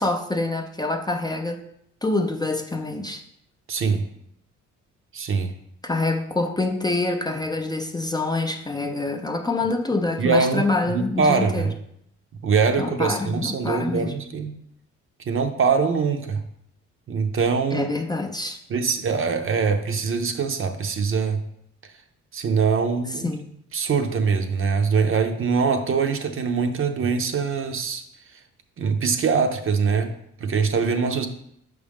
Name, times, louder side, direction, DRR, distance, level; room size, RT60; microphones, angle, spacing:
voice 1, 0.0-1.6 2.0-3.2 5.8-11.7 12.8-14.1 17.7-18.6 23.1-23.5, left 2 dB, 15° left, 3 dB, 0.5 m, -26 dB
voice 2, 3.7-4.0 5.1-5.5 10.2-11.7 12.4-14.5 15.3-16.4 17.1-17.9 18.7-21.4 22.3-23.3 23.7-28.0 28.8-30.1 30.4-31.3, right 5 dB, 45° right, 7 dB, 0.7 m, -23 dB
6.3 x 5.1 x 3.5 m, 0.73 s
cardioid pair, 90°, 30 cm